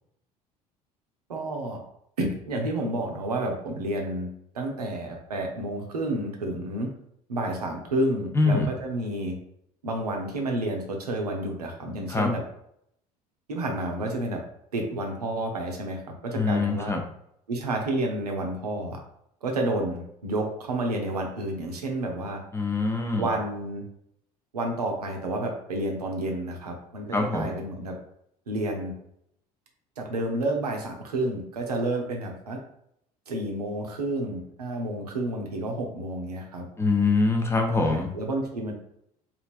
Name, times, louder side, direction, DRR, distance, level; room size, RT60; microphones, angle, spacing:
voice 1, 1.3-1.8 2.2-4.3 4.5-6.9 7.3-9.4 9.8-12.4 13.5-14.4 14.7-16.9 17.5-19.0 19.4-22.4 23.2-23.8 24.5-28.0 28.5-28.9 30.0-32.6 33.3-36.7 37.7-38.7, right 1 dB, 80° right, 2 dB, 0.5 m, -30 dB
voice 2, 8.3-8.7 12.1-12.3 16.3-17.0 22.5-23.3 27.1-27.5 36.8-38.1, left 3 dB, 15° left, 3 dB, 0.5 m, -24 dB
3.1 x 2.4 x 2.5 m, 0.73 s
figure-of-eight pair, 60°, 20 cm